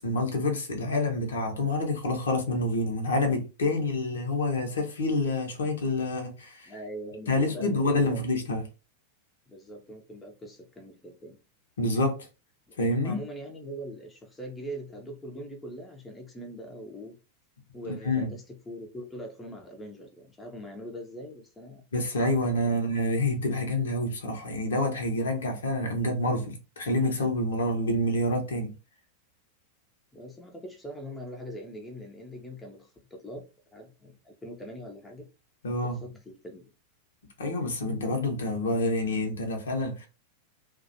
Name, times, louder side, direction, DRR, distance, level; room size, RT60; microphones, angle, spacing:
voice 1, 0.0-6.7 7.3-8.6 11.8-12.3 12.8-13.2 17.9-18.3 21.9-28.7 35.6-36.0 37.4-40.1, left 1 dB, 65° left, 0.6 m, -27 dB
voice 2, 6.7-8.2 9.5-11.4 12.7-17.1 17.7-21.8 22.6-22.8 30.1-33.4 33.7-35.3 35.8-36.7, equal, 10° left, 0.5 m, -42 dB
2.3 x 2.1 x 2.6 m
figure-of-eight pair, 90°, 0 cm